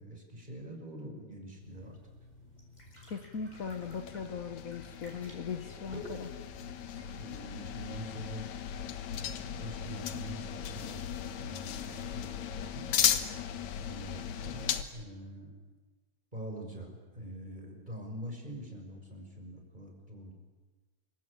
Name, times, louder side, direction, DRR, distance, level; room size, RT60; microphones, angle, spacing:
voice 1, 0.0-2.0 7.1-8.5 9.1-11.1 11.4-12.9 13.8-15.5 16.3-20.3, right 1 dB, 15° right, 2 dB, 6.0 m, -44 dB
sound 1, 1.6-8.3, left 1 dB, 10° left, 7.5 m, -51 dB
voice 2, 3.1-6.3, left 6 dB, 85° left, 7 dB, 0.7 m, -39 dB
sound 2, 3.5-14.8, left 9 dB, 70° left, 2.5 m, -36 dB
27.5 x 24.5 x 8.8 m, 1.3 s
omnidirectional pair, 3.4 m